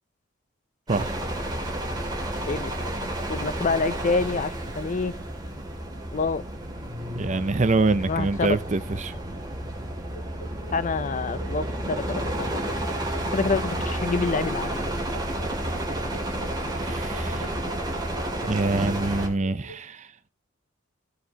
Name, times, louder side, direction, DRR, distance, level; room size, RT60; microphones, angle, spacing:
sound 1, 0.9-19.3, right 1 dB, 20° right, 2.6 m, -31 dB
voice 1, 2.5-2.9 3.3-5.1 6.1-6.4 8.1-8.6 10.7-12.6 13.3-14.8, left 4 dB, 40° left, 0.5 m, -27 dB
voice 2, 7.1-9.1 16.8-17.5 18.5-20.1, right 3 dB, 35° right, 0.6 m, -25 dB
sound 2, 10.1-19.8, right 2 dB, 80° left, 2.6 m, -45 dB
16.0 x 6.9 x 2.8 m
head